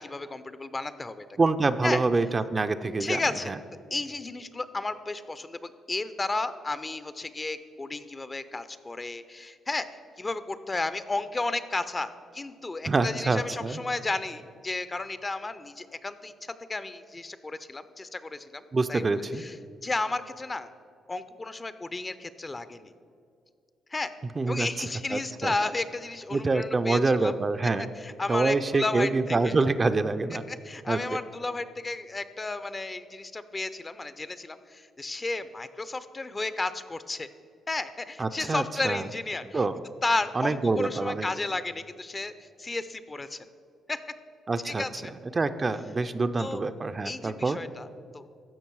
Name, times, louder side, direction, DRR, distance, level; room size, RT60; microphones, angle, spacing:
voice 1, 0.0-1.3 1.8-2.0 3.0-3.6 3.9-9.9 10.2-16.3 16.7-18.6 18.9-19.5 19.8-20.7 21.1-22.9 23.9-24.1 24.5-27.3 27.8-29.5 30.5-37.3 37.7-39.6 40.0-43.4 43.9-44.0 44.6-45.1 46.4-46.6 47.0-47.9 48.1-48.3, left 3 dB, 30° left, 13 dB, 0.5 m, -33 dB
voice 2, 1.4-3.2 3.5-3.6 12.9-13.8 18.7-19.4 24.4-25.5 26.3-27.9 28.3-30.4 30.9-31.0 38.2-39.1 39.5-39.8 40.3-41.3 44.5-44.8 45.3-47.6, right 3 dB, 35° right, 9 dB, 0.4 m, -26 dB
14.0 x 5.2 x 4.7 m, 2.3 s
supercardioid pair, 65°, 0 cm